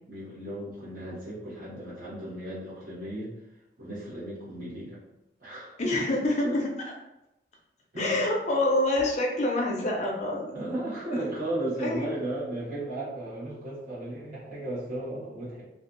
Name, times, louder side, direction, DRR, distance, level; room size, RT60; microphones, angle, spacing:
voice 1, 0.1-3.3 3.8-5.0 5.4-5.7 6.4-6.6 7.9-8.2 10.5-15.6, right 1 dB, 50° right, -8 dB, 1.1 m, -35 dB
voice 2, 5.8-6.7 8.0-10.6 11.1-11.2 11.8-12.1, left 1 dB, 40° left, -1 dB, 0.4 m, -26 dB
2.5 x 2.2 x 2.5 m, 0.93 s
head